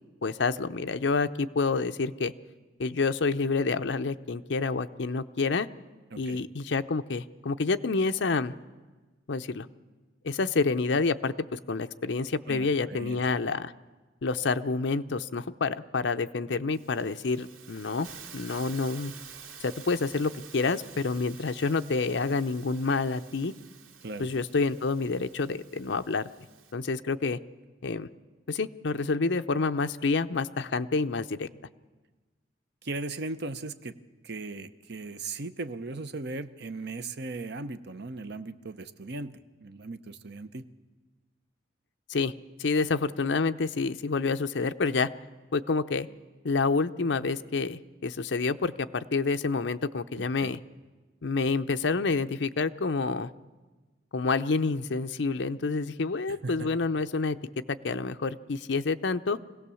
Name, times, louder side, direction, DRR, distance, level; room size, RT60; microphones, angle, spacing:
voice 1, 0.2-2.3 2.8-5.7 6.2-8.5 9.3-9.7 10.2-13.7 14.2-18.1 18.3-19.1 19.6-23.5 24.2-26.2 26.7-27.4 27.8-28.1 28.5-31.5 42.1-42.3 42.6-45.1 45.5-46.1 46.4-50.6 51.2-53.3 54.1-57.4 57.7-59.4, left 4 dB, 65° left, 10 dB, 0.6 m, -28 dB
voice 2, 6.1-6.4 12.5-13.2 24.0-24.3 32.8-33.9 34.2-40.6 50.2-50.5 56.3-56.7, right 3 dB, 55° right, 10 dB, 0.8 m, -38 dB
Hiss, 16.7-26.7, right 6 dB, 90° right, 2.8 m, -49 dB
25.0 x 17.0 x 7.0 m, 1.3 s
head